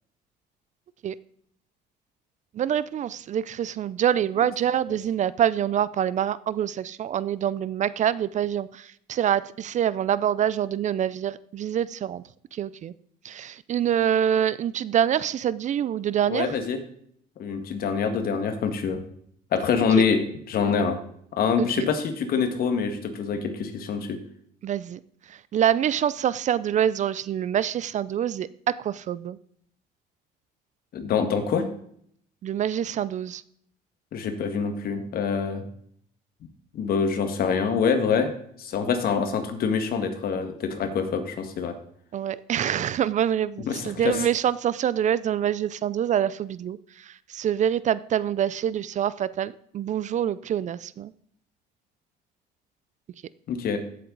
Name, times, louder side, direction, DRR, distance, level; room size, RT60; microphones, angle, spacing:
voice 1, 2.6-12.2 12.6-12.9 13.2-16.5 19.9-20.0 21.6-21.9 24.6-25.0 25.5-29.4 32.4-33.4 42.1-46.8 47.1-51.1, right 9 dB, 45° right, 18 dB, 0.5 m, -25 dB
voice 2, 16.3-16.8 17.4-19.0 19.5-21.0 21.3-24.2 30.9-31.7 34.1-35.7 36.7-38.3 38.6-41.7 43.7-44.3 53.5-53.8, left 6 dB, 60° left, 7 dB, 1.8 m, -25 dB
15.5 x 7.6 x 4.0 m, 0.66 s
cardioid pair, 110°, 17 cm